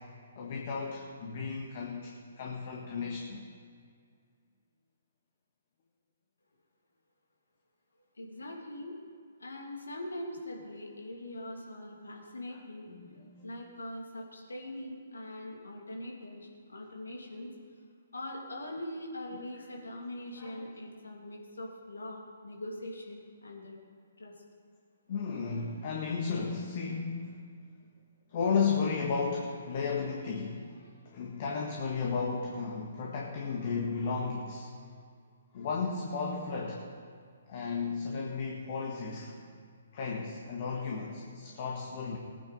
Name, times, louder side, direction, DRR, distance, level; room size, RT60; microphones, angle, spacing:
voice 1, 0.3-3.4 12.9-13.3 20.4-20.7 25.1-27.4 28.3-34.7 35.5-36.9 37.5-39.4 39.9-42.2, left 5 dB, 45° left, -1 dB, 1.7 m, -34 dB
voice 2, 8.2-9.0 9.4-12.9 13.4-17.5 18.1-23.7 24.2-24.3, left 1 dB, 80° left, 0 dB, 2.7 m, -42 dB
19.5 x 9.6 x 4.1 m, 2.1 s
figure-of-eight pair, 130°, 0 cm